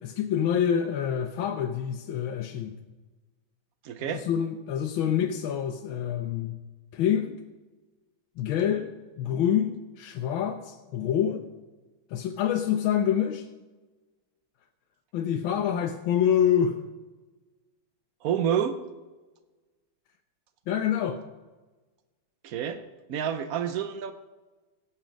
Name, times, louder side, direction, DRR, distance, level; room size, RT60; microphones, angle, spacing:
voice 1, 0.0-2.8 4.1-6.6 6.9-7.4 8.4-11.5 12.1-13.5 15.1-16.8 20.7-21.2, left 9 dB, 75° left, 5 dB, 1.5 m, -26 dB
voice 2, 3.8-4.3 18.2-18.8 22.4-22.8 23.1-24.1, right 8 dB, 80° right, 10 dB, 0.8 m, -28 dB
18.0 x 7.3 x 5.1 m, 1.2 s
omnidirectional pair, 2.3 m